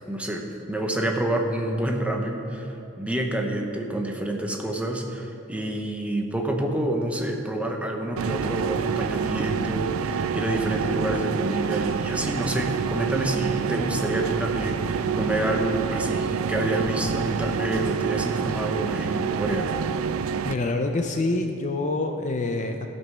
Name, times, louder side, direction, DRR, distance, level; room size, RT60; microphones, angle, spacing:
voice 1, 0.1-19.7, right 1 dB, 5° right, 2 dB, 0.9 m, -28 dB
sound 1, 8.2-20.5, right 6 dB, 80° right, 0.4 m, -27 dB
voice 2, 20.5-22.9, left 2 dB, 35° left, 5 dB, 0.5 m, -26 dB
16.0 x 5.5 x 6.2 m, 2.7 s
head